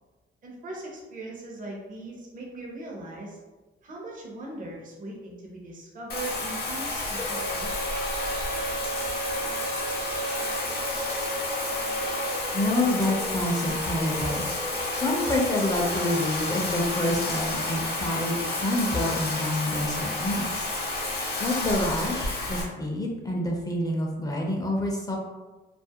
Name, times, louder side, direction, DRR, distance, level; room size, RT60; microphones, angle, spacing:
voice 1, 0.4-3.4 3.8-8.2, right 2 dB, 45° right, -3 dB, 0.6 m, -40 dB
Bathtub (filling or washing), 6.1-22.6, left 2 dB, 55° left, 0.7 m, -31 dB
Female singing, 7.1-16.3, right 2 dB, 65° right, 1.0 m, -36 dB
voice 2, 12.5-14.5 15.0-20.7 21.4-25.2, left 1 dB, 20° left, -1 dB, 0.4 m, -27 dB
2.4 x 2.0 x 2.7 m, 1.2 s
cardioid pair, 90°, 20 cm